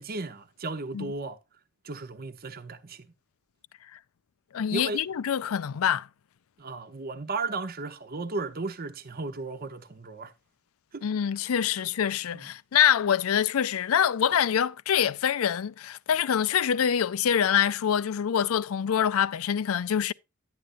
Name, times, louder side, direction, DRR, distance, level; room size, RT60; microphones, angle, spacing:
voice 1, 0.0-1.4 1.8-3.1 4.7-5.0 6.6-10.3 10.9-11.1 12.3-12.5, right 3 dB, 45° right, 0.8 m, -35 dB
voice 2, 4.5-6.1 11.0-20.1, left 9 dB, 75° left, 0.4 m, -25 dB
11.5 x 9.0 x 2.5 m
head